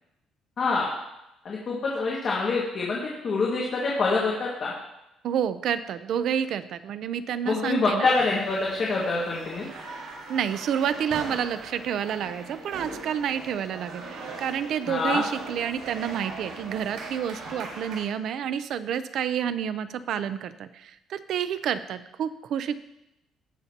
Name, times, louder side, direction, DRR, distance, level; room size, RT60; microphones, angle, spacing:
voice 1, 0.6-0.9 1.4-3.0 3.2-4.7 7.5-9.7 14.9-15.2, left 3 dB, 35° left, -5 dB, 1.8 m, -25 dB
voice 2, 5.2-8.1 10.3-22.8, right 8 dB, 55° right, 12 dB, 0.5 m, -29 dB
sound 1, 8.1-18.0, right 3 dB, 90° right, 4.3 m, -40 dB
18.0 x 6.7 x 2.9 m, 0.88 s
cardioid pair, 170°, 0 cm